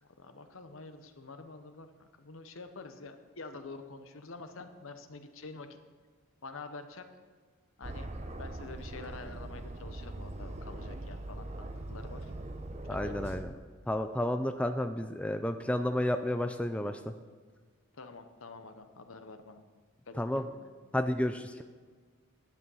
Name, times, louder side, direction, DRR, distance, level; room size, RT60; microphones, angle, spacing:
voice 1, 0.0-5.7 6.4-7.0 7.8-8.1 8.4-12.3 12.9-13.2 17.9-19.6 20.1-20.7, left 3 dB, 75° left, 8 dB, 0.9 m, -47 dB
Aircraft, 7.8-13.4, right 2 dB, 30° right, 0.7 m, -41 dB
voice 2, 12.9-13.5 13.9-17.1 20.2-20.4 20.9-21.6, left 1 dB, 5° left, 7 dB, 0.3 m, -31 dB
10.5 x 8.5 x 5.6 m, 1.5 s
head